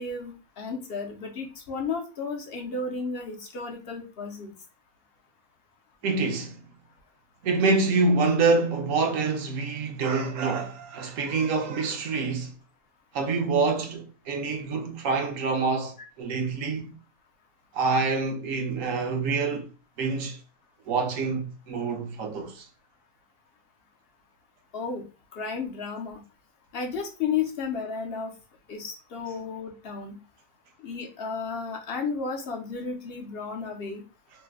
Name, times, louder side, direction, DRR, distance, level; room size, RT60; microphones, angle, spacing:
voice 1, 0.0-4.5 24.7-25.0 25.3-26.2 26.7-28.3 28.7-30.2 30.8-34.0, left 5 dB, 60° left, 0.6 m, -33 dB
voice 2, 6.0-6.6 7.4-12.5 13.1-17.0 17.7-19.7 20.0-20.4 20.9-22.7, right 4 dB, 65° right, 1.0 m, -26 dB
3.1 x 2.1 x 3.4 m
omnidirectional pair, 1.7 m